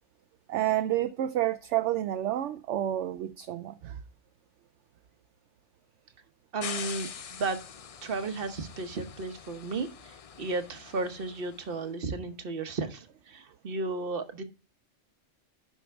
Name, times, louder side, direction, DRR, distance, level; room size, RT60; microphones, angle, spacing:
voice 1, 0.5-4.0, right 13 dB, 70° right, 0.8 m, -29 dB
voice 2, 6.5-7.6 8.0-9.9 10.4-14.4, right 3 dB, 50° right, 1.2 m, -34 dB
sound 1, 6.6-11.7, left 7 dB, 70° left, 0.3 m, -43 dB
11.0 x 5.5 x 3.3 m
omnidirectional pair, 1.3 m